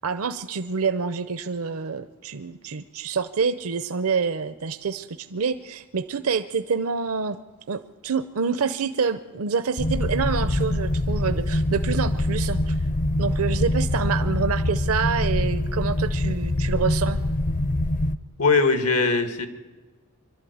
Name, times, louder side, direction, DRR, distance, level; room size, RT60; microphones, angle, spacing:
voice 1, 0.0-7.4 7.7-12.8 13.2-17.2, right 5 dB, 70° right, 12 dB, 0.7 m, -27 dB
sound 1, 9.8-18.2, left 1 dB, 35° left, 0.6 m, -24 dB
voice 2, 18.4-19.5, left 4 dB, 90° left, 9 dB, 1.8 m, -20 dB
24.0 x 12.5 x 9.4 m, 1.3 s
head